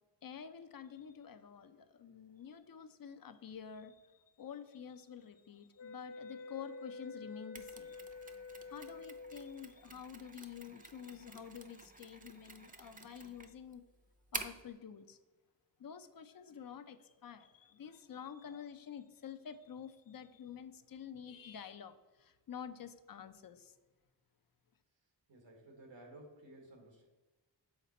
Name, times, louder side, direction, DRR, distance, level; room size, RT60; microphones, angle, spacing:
voice 1, 0.2-8.0 8.7-13.8 14.3-15.2 15.8-23.8, left 8 dB, 50° left, 11 dB, 0.5 m, -49 dB
sound 1, 5.8-9.7, left 3 dB, 85° left, 1.0 m, -48 dB
Mechanisms, 7.5-14.7, right 3 dB, 20° right, 0.6 m, -49 dB
voice 2, 25.3-27.1, right 1 dB, 85° right, 2 dB, 1.7 m, -55 dB
7.2 x 4.1 x 4.2 m, 1.2 s
cardioid pair, 70°, 44 cm